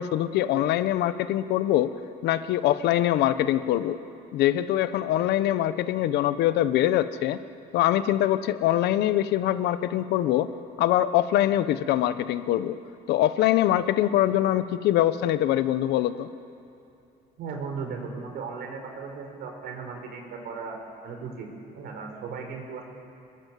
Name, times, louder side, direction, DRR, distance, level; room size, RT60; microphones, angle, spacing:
voice 1, 0.0-1.9 2.2-4.0 4.3-7.4 7.7-10.5 10.8-12.8 13.1-16.3, left 13 dB, 80° left, 12 dB, 1.0 m, -23 dB
voice 2, 17.4-22.8, right 5 dB, 70° right, 3 dB, 5.0 m, -37 dB
27.5 x 21.5 x 7.6 m, 2.7 s
cardioid pair, 110°, 17 cm